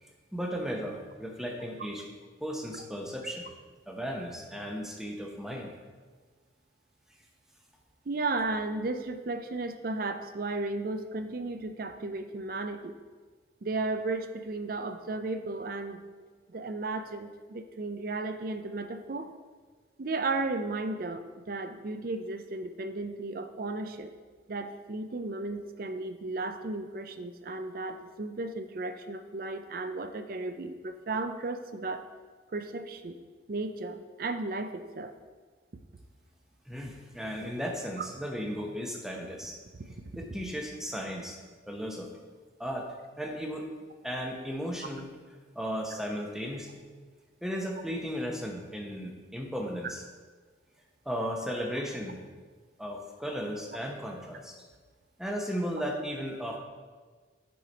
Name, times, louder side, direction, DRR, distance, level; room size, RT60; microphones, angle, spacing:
voice 1, 0.0-2.0 2.4-3.5 3.9-5.7 36.7-39.6 40.2-41.4 41.7-42.1 42.6-42.9 43.2-43.7 44.0-45.1 45.5-46.8 47.4-50.0 51.0-52.2 52.8-54.5 55.2-56.6, equal, 5° right, 1 dB, 0.8 m, -35 dB
voice 2, 8.1-12.9 13.6-16.0 16.5-19.3 20.0-24.1 24.5-32.0 32.5-33.2 33.5-35.1 38.0-38.1 39.8-39.9, right 3 dB, 50° right, 8 dB, 0.5 m, -34 dB
6.9 x 4.9 x 5.1 m, 1.5 s
head